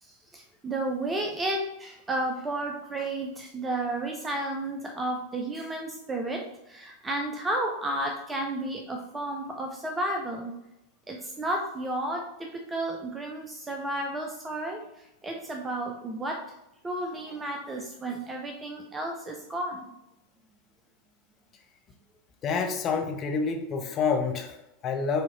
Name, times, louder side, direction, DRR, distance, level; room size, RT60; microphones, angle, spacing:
voice 1, 0.0-10.5 11.1-16.5 16.8-19.9, right 1 dB, 15° right, 3 dB, 0.5 m, -32 dB
voice 2, 22.4-25.2, left 5 dB, 30° left, 4 dB, 0.7 m, -28 dB
6.3 x 2.7 x 2.9 m, 0.88 s
figure-of-eight pair, 90°, 0 cm